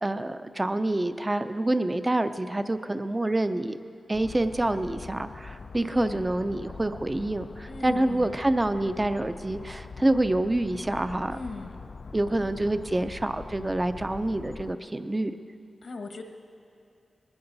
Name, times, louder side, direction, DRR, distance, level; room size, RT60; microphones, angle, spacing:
voice 1, 0.0-3.8 4.1-11.4 12.1-15.3, right 1 dB, 20° right, 10 dB, 0.5 m, -27 dB
sound 1, 4.1-14.7, left 4 dB, 50° left, 0.3 m, -43 dB
voice 2, 5.8-6.3 7.7-8.3 11.3-11.8 12.3-12.6 15.8-16.2, left 3 dB, 65° left, 4 dB, 1.3 m, -39 dB
20.5 x 16.5 x 4.0 m, 2.6 s
wide cardioid pair, 140°, 0 cm